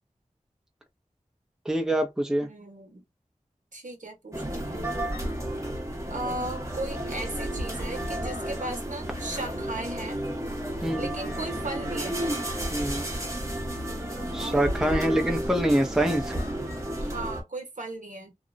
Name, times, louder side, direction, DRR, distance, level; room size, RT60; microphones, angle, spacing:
voice 1, 1.6-2.5 10.8-11.1 12.7-13.1 14.3-16.3, right 1 dB, 5° right, 0.6 m, -25 dB
voice 2, 2.4-3.1 3.7-5.1 6.1-10.2 11.0-12.2 14.3-14.6 14.9-15.1 17.0-18.3, right 2 dB, 70° right, 0.9 m, -37 dB
sound 1, 4.3-17.4, right 1 dB, 20° right, 0.9 m, -32 dB
2.8 x 2.1 x 2.5 m
wide cardioid pair, 50°, 13 cm